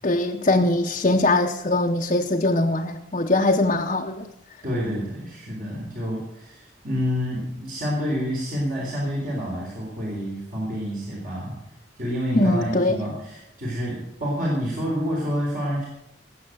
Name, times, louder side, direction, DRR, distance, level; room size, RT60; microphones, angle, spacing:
voice 1, 0.0-4.3 12.3-13.0, left 2 dB, 35° left, 1 dB, 0.7 m, -21 dB
voice 2, 4.6-11.5 12.0-15.9, equal, 50° right, -4 dB, 3.9 m, -28 dB
18.5 x 7.7 x 6.5 m, 0.83 s
head